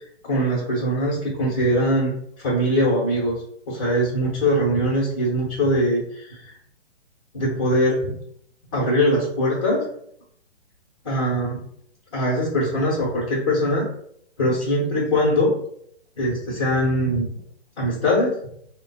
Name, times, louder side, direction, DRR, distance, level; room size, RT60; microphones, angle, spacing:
voice 1, 0.2-2.1 2.4-3.4 3.7-6.6 7.3-8.1 8.7-9.9 11.0-11.6 12.1-13.9 14.4-15.5 16.1-17.3 17.8-18.4, equal, 30° left, -6 dB, 0.9 m, -22 dB
3.1 x 2.2 x 4.1 m, 0.66 s
hypercardioid pair, 170°, 35 cm